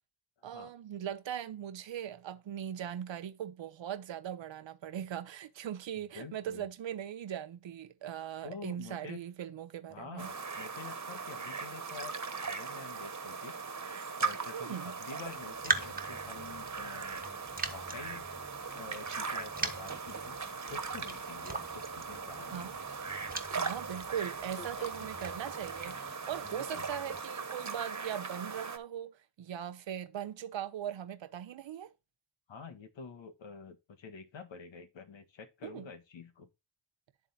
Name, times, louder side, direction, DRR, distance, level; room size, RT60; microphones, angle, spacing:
voice 1, 0.4-10.3 14.5-15.0 22.5-22.8 23.5-31.9 35.6-35.9, right 10 dB, 90° right, 0.9 m, -40 dB
voice 2, 6.1-6.6 8.4-9.2 9.9-12.1 12.4-13.6 14.2-17.3 17.7-18.3 18.7-20.4 20.7-22.7 24.6-24.9 26.4-26.8 32.5-36.5, left 5 dB, 85° left, 1.5 m, -48 dB
sound 1, 10.2-28.8, right 5 dB, 40° right, 1.4 m, -39 dB
Raindrop, 15.2-25.9, right 3 dB, 20° right, 1.3 m, -41 dB
sound 2, 15.5-27.2, right 1 dB, 5° right, 1.9 m, -56 dB
11.0 x 3.7 x 4.2 m
cardioid pair, 50°, 44 cm